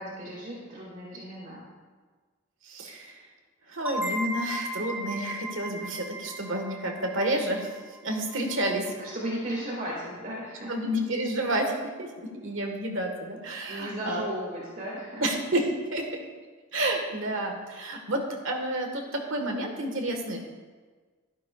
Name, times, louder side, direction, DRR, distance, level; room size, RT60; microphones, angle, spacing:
voice 1, 0.0-1.7 8.7-10.9 13.7-15.2, equal, 40° right, -4 dB, 2.0 m, -36 dB
voice 2, 2.7-3.1 3.7-7.7 8.0-8.8 10.7-11.7 12.0-14.3 15.2-15.6 15.9-16.1 16.7-20.4, right 1 dB, 70° right, 2 dB, 1.5 m, -30 dB
sound 1, 3.8-9.3, right 1 dB, 10° right, 1.1 m, -37 dB
12.5 x 11.5 x 2.3 m, 1.4 s
head